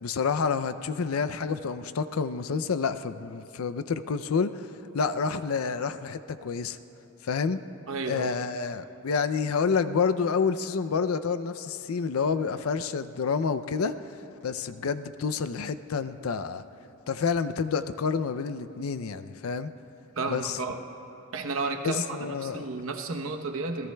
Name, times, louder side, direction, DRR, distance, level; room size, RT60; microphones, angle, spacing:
voice 1, 0.0-6.8 7.2-7.6 8.1-13.9 14.4-16.6 17.1-19.7 20.3-20.6 21.8-22.7, left 5 dB, 80° left, 12 dB, 0.5 m, -28 dB
voice 2, 7.9-8.4 20.2-20.8 21.3-23.9, right 3 dB, 70° right, 5 dB, 0.9 m, -32 dB
26.5 x 17.5 x 2.3 m, 2.9 s
head